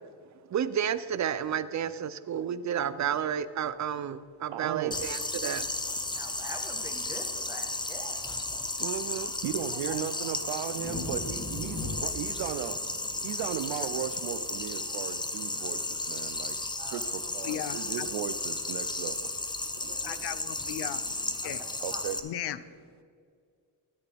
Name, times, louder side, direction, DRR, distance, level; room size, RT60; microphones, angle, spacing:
voice 1, 0.5-5.6 8.8-9.3 19.8-20.0, right 9 dB, 40° right, 15 dB, 0.5 m, -31 dB
voice 2, 4.5-5.1 9.4-12.8 13.2-16.6 16.9-19.3 21.8-22.2, right 10 dB, 90° right, 8 dB, 0.6 m, -36 dB
sound 1, 4.9-22.2, left 2 dB, 10° left, 0.6 m, -34 dB
voice 3, 6.1-8.2 9.7-10.2 16.8-17.4 17.7-17.8 20.0-20.2 20.9-21.0 21.4-22.0, right 1 dB, 5° right, 2 dB, 1.1 m, -46 dB
sound 2, 8.8-8.9 9.4-16.0 16.3-17.0 17.9-18.1, left 2 dB, 85° left, 2.8 m, -43 dB
voice 4, 17.2-18.1 20.1-21.0 21.4-21.6 22.2-22.6, left 12 dB, 65° left, 15 dB, 0.6 m, -36 dB
14.0 x 8.3 x 3.4 m, 2.2 s
cardioid pair, 105°, 43 cm